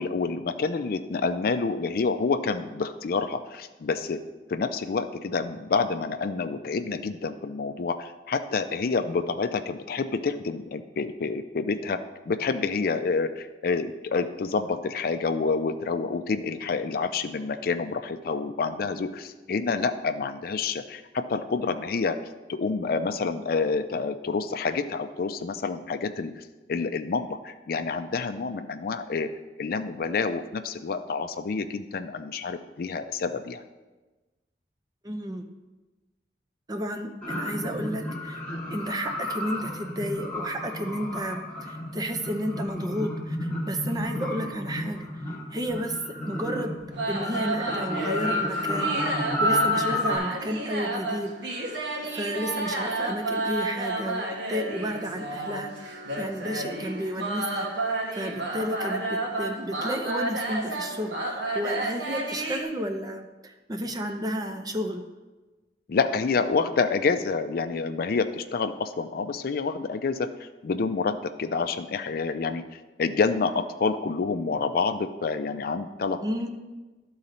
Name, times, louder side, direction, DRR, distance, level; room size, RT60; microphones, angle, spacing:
voice 1, 0.0-4.2 4.5-22.2 22.5-26.4 26.7-29.3 29.6-33.6 65.9-76.2, left 4 dB, 55° left, 8 dB, 0.4 m, -28 dB
voice 2, 35.0-35.5 36.7-38.4 38.7-45.1 45.5-46.8 47.0-51.7 52.1-57.7 58.1-65.0 76.2-76.5, equal, 20° right, 5 dB, 0.6 m, -32 dB
sound 1, 37.2-50.2, left 1 dB, 5° left, 1.5 m, -31 dB
sound 2, 46.9-62.6, right 2 dB, 75° right, 1.3 m, -31 dB
11.5 x 3.9 x 4.2 m, 1.2 s
head